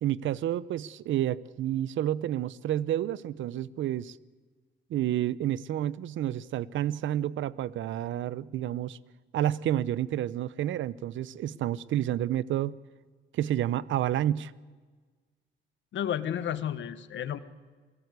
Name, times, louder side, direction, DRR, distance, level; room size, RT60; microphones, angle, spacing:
voice 1, 0.0-4.2 4.9-9.0 9.3-12.7 13.3-14.5, right 12 dB, 75° right, 0.7 m, -30 dB
voice 2, 15.9-17.4, left 10 dB, 70° left, 1.4 m, -32 dB
28.0 x 17.5 x 8.2 m
cardioid pair, 90°, 20 cm